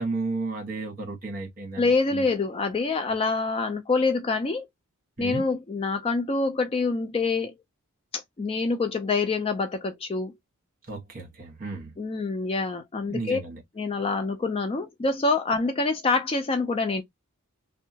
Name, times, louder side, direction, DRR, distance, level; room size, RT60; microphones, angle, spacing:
voice 1, 0.0-2.2 5.2-5.5 10.9-11.9 13.1-13.6, right 3 dB, 40° right, 1.1 m, -33 dB
voice 2, 1.8-4.7 5.2-7.5 8.1-10.3 12.0-13.4 13.8-17.0, left 3 dB, 25° left, 0.3 m, -26 dB
2.7 x 2.2 x 2.6 m
head